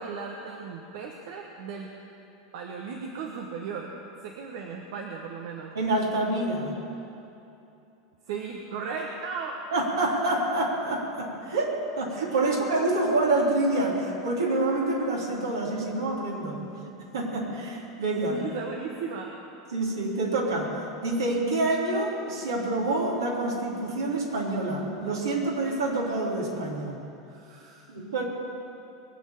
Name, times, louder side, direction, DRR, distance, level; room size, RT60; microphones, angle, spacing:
voice 1, 0.0-1.9 2.5-3.9 4.2-5.7 8.3-9.6 12.3-12.5 18.3-19.4 27.3-27.9, right 5 dB, 60° right, 1 dB, 1.3 m, -36 dB
voice 2, 5.7-6.8 9.7-16.6 17.0-18.4 19.7-20.8 21.0-26.9 27.9-28.2, right 2 dB, 80° right, -3 dB, 3.5 m, -27 dB
22.5 x 7.6 x 7.1 m, 2.8 s
hypercardioid pair, 85°, 2 cm